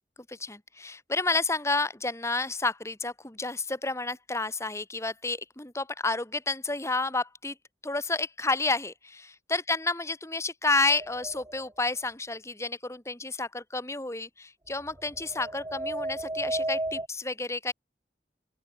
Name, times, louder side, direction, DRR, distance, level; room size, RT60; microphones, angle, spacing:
voice 1, 0.3-7.6 7.8-17.7, left 3 dB, 15° left, 2.0 m, -30 dB
sound 1, 10.9-11.6 14.9-17.1, right 1 dB, 20° right, 2.1 m, -33 dB
open air
head